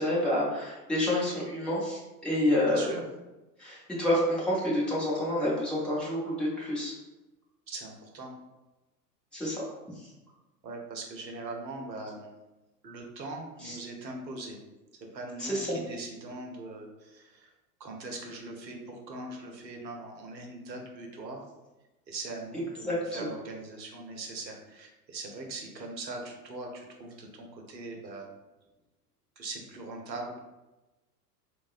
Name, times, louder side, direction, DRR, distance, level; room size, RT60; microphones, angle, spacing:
voice 1, 0.0-2.9 3.6-6.9 9.3-9.6 13.6-13.7 15.4-15.8 22.8-23.0, left 1 dB, ahead, -7 dB, 0.4 m, -28 dB
voice 2, 2.6-3.0 7.7-8.3 10.6-12.3 12.8-14.6 15.1-17.5 17.8-21.5 22.1-28.3 29.4-30.4, right 2 dB, 85° right, 1 dB, 0.7 m, -41 dB
3.4 x 2.0 x 2.4 m, 1.1 s
figure-of-eight pair, 85°, 50 cm